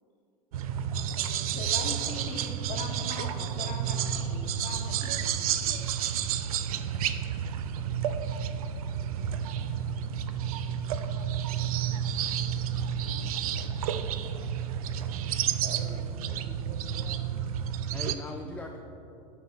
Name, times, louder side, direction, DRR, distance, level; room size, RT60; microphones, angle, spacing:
sound 1, 0.5-18.2, right 9 dB, 75° right, 0.4 m, -31 dB
voice 1, 0.7-5.8, left 4 dB, 45° left, 3 dB, 1.0 m, -41 dB
voice 2, 1.8-2.5 17.9-18.8, left 2 dB, 10° left, 2 dB, 0.4 m, -42 dB
sound 2, 5.8-15.6, equal, 20° right, 1.5 m, -53 dB
voice 3, 15.3-17.5 18.4-18.5, right 3 dB, 35° right, 5 dB, 0.8 m, -47 dB
9.1 x 3.9 x 4.2 m, 2.7 s
hypercardioid pair, 90°, 19 cm